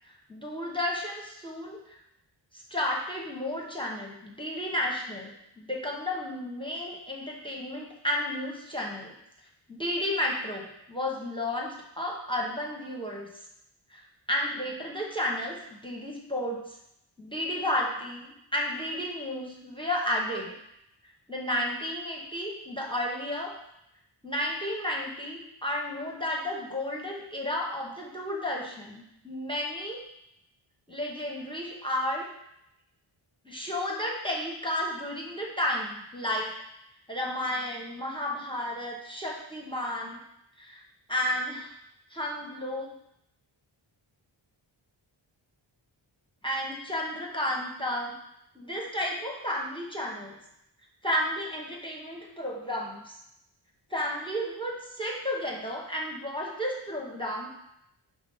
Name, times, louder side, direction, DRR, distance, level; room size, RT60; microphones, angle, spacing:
voice 1, 0.1-2.0 2.5-5.3 5.7-9.1 9.7-13.3 13.9-14.0 14.3-16.8 17.2-20.6 21.3-23.6 24.2-30.1 30.9-32.3 33.4-36.5 37.1-40.2 40.6-40.8 41.1-41.7 42.1-42.9 46.4-48.1 48.5-50.4 51.0-53.2 53.9-57.5, left 1 dB, 10° left, -2 dB, 0.9 m, -32 dB
5.0 x 3.6 x 5.5 m, 0.80 s
wide cardioid pair, 85°, 48 cm